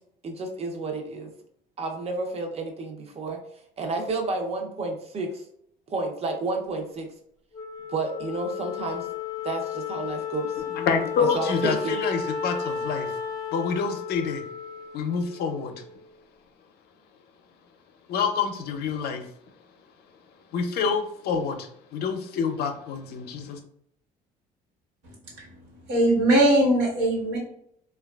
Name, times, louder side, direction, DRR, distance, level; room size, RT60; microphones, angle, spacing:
voice 1, 0.2-1.3 1.8-3.4 3.8-5.4 5.9-7.1 7.9-9.1 9.4-10.5 11.3-12.0, right 3 dB, 40° right, 3 dB, 0.5 m, -30 dB
Wind instrument woodwind instrument, 7.5-16.1, left 7 dB, 20° left, 0.5 m, -34 dB
voice 2, 10.8-13.1 13.5-14.4 14.9-15.8 18.1-19.3 20.5-23.6, left 6 dB, 70° left, 6 dB, 0.5 m, -27 dB
voice 3, 25.9-27.4, right 1 dB, 90° right, -4 dB, 1.2 m, -20 dB
3.0 x 2.2 x 2.3 m, 0.69 s
cardioid pair, 110°, 17 cm